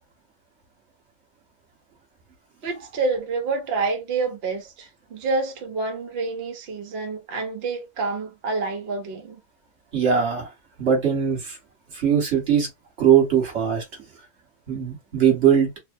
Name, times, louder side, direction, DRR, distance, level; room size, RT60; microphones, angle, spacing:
voice 1, 2.6-9.4, right 3 dB, 85° right, 0.5 m, -28 dB
voice 2, 9.9-10.5 10.8-11.6 11.9-12.7 13.0-13.8 14.7-15.7, right 8 dB, 40° right, 1.4 m, -20 dB
3.1 x 2.1 x 2.5 m
omnidirectional pair, 2.0 m